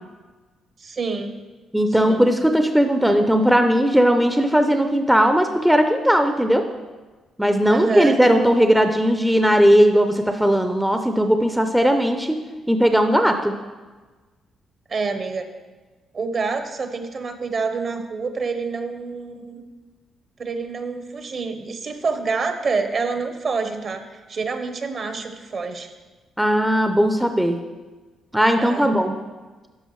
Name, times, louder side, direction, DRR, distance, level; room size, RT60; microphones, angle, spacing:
voice 1, 0.8-1.3 2.0-2.2 7.7-8.2 14.9-15.4 16.1-19.6 20.4-25.9 28.6-29.1, right 4 dB, 45° right, 7 dB, 0.8 m, -27 dB
voice 2, 1.7-6.7 7.4-13.5 26.4-27.6 28.3-29.1, equal, 5° right, 6 dB, 0.5 m, -18 dB
11.0 x 5.5 x 3.1 m, 1.3 s
cardioid pair, 90°, 0 cm